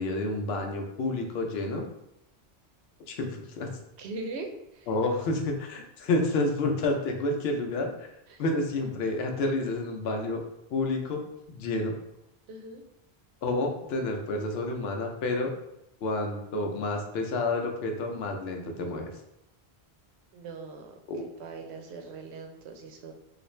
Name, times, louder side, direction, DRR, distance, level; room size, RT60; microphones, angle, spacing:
voice 1, 0.0-1.8 3.1-3.7 4.9-8.1 8.4-10.4 10.7-11.2 11.5-11.9 13.4-15.5 16.0-19.1 21.1-21.2, left 2 dB, 75° left, 3 dB, 0.8 m, -29 dB
voice 2, 4.0-4.9 8.3-8.4 12.5-12.8 20.3-21.0 21.4-23.1, right 3 dB, 85° right, 4 dB, 0.8 m, -40 dB
3.3 x 2.4 x 3.1 m, 0.84 s
omnidirectional pair, 1.1 m